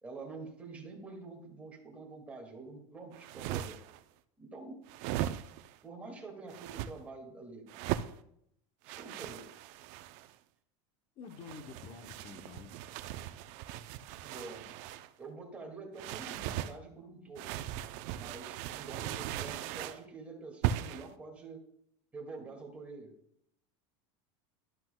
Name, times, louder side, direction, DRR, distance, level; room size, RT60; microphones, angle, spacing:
voice 1, 0.0-3.8 4.4-4.8 5.8-7.7 8.9-9.5 14.2-14.7 15.2-17.6 18.1-21.6 22.1-23.1, right 3 dB, 10° right, 0 dB, 2.0 m, -47 dB
sound 1, 3.1-4.0 4.9-5.8 6.5-6.9 7.7-8.1 8.9-10.3 11.3-15.1 16.0-16.7 17.3-20.0 20.6-21.1, right 12 dB, 50° right, 0.5 m, -38 dB
voice 2, 11.2-13.1, left 5 dB, 35° left, 7 dB, 0.8 m, -49 dB
12.0 x 12.0 x 2.3 m, 0.73 s
supercardioid pair, 155°, 15 cm